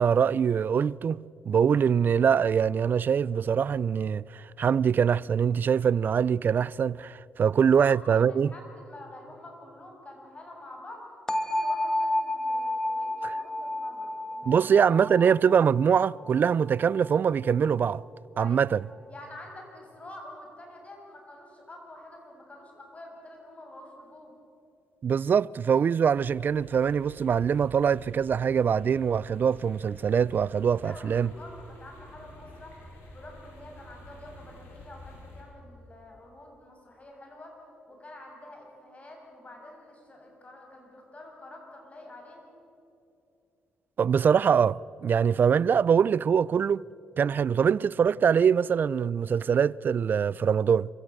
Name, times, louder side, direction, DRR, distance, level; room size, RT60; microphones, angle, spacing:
voice 1, 0.0-8.5 14.5-18.0 18.4-18.8 25.0-31.3 44.0-46.8 47.2-50.9, right 7 dB, 50° right, 0.4 m, -23 dB
voice 2, 7.4-11.1 11.5-14.7 18.3-18.7 19.1-24.3 30.8-32.7 33.1-37.6 37.9-42.4, left 1 dB, 30° left, 7.6 m, -47 dB
sound 1, 11.3-17.1, left 1 dB, 15° left, 2.0 m, -31 dB
sound 2, 26.1-35.4, left 1 dB, 70° left, 6.6 m, -50 dB
25.5 x 16.0 x 7.9 m
hypercardioid pair, 50°, 4 cm